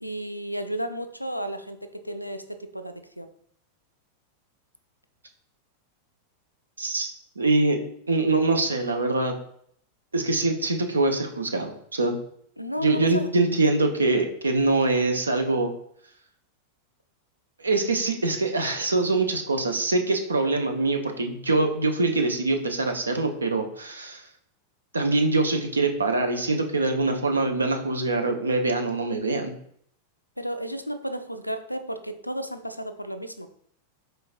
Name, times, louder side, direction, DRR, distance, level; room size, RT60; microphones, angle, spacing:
voice 1, 0.0-3.3 12.6-13.3 30.4-33.5, equal, 90° left, 9 dB, 0.3 m, -33 dB
voice 2, 6.8-9.4 10.1-12.2 12.8-15.7 17.6-24.2 24.9-29.5, right 2 dB, 75° right, 5 dB, 0.5 m, -24 dB
4.7 x 3.1 x 2.5 m, 0.65 s
figure-of-eight pair, 90°, 0 cm